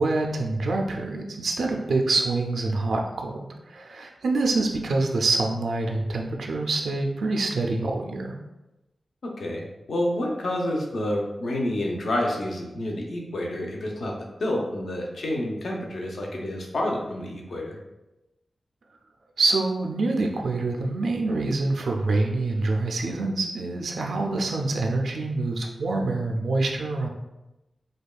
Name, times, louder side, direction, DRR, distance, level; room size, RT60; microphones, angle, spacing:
voice 1, 0.0-8.3 19.4-27.1, right 3 dB, 75° right, 1 dB, 0.4 m, -26 dB
voice 2, 9.2-14.1 14.4-17.8, left 1 dB, 70° left, -1 dB, 0.6 m, -29 dB
5.0 x 2.3 x 2.3 m, 0.99 s
wide cardioid pair, 125°, 0 cm